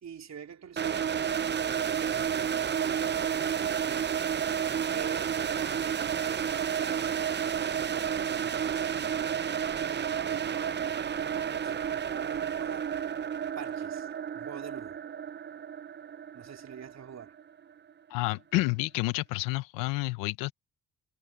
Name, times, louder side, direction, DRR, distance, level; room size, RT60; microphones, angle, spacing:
voice 1, 0.0-4.1 4.9-6.5 6.8-7.3 7.6-8.2 8.4-9.2 9.9-10.9 11.2-12.9 13.6-14.1 14.3-15.0 16.3-17.4, right 8 dB, 55° right, 4.2 m, -44 dB
sound 1, 0.8-17.6, right 8 dB, 35° right, 0.7 m, -31 dB
voice 2, 18.1-20.5, left 20 dB, 90° left, 0.9 m, -29 dB
supercardioid pair, 60°, 32 cm